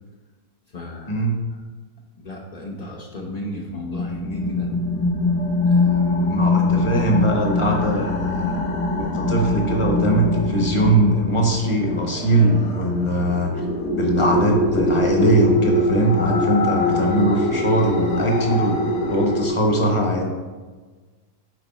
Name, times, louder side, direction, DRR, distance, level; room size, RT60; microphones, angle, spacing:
voice 1, 0.7-1.3 2.2-4.7 5.6-6.4, left 1 dB, 55° left, -1 dB, 0.4 m, -34 dB
sound 1, 3.7-19.5, left 2 dB, 75° left, 1.6 m, -23 dB
voice 2, 6.3-8.6 8.9-13.5 13.9-20.2, right 1 dB, 25° left, 1 dB, 0.9 m, -20 dB
9.4 x 3.9 x 4.2 m, 1.4 s
omnidirectional pair, 1.8 m